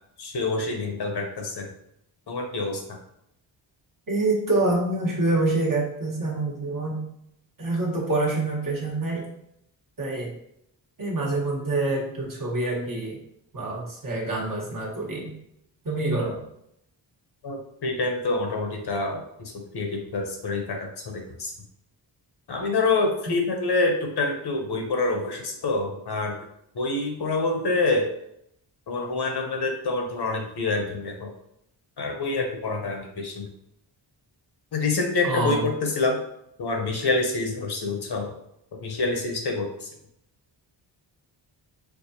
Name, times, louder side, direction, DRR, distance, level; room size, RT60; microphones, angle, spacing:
voice 1, 0.2-1.7 2.3-2.8 17.4-21.5 22.5-26.4 26.7-28.1 28.9-31.3 32.0-33.5 34.7-36.2 36.6-38.3 38.7-39.9, left 3 dB, 55° left, 2 dB, 0.9 m, -27 dB
voice 2, 4.1-7.0 7.6-9.3 10.0-10.3 11.0-13.2 13.5-15.3 15.8-16.4 35.2-35.6, right 2 dB, 45° right, -3 dB, 1.2 m, -26 dB
4.6 x 2.3 x 2.7 m, 0.77 s
cardioid pair, 70°, 47 cm